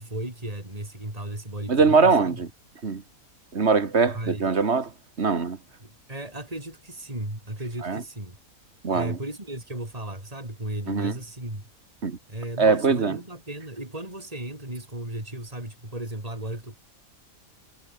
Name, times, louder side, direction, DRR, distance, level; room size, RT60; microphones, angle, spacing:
voice 1, 0.0-2.4 4.0-4.5 5.8-8.4 8.9-11.6 12.3-16.8, right 1 dB, 25° right, 5.4 m, -35 dB
voice 2, 1.7-2.5 2.8-3.0 3.5-4.9 5.2-5.6 7.8-8.0 8.8-9.2 10.9-11.1 12.0-12.2 12.6-13.2, right 4 dB, 45° right, 2.0 m, -22 dB
omnidirectional pair, 1.6 m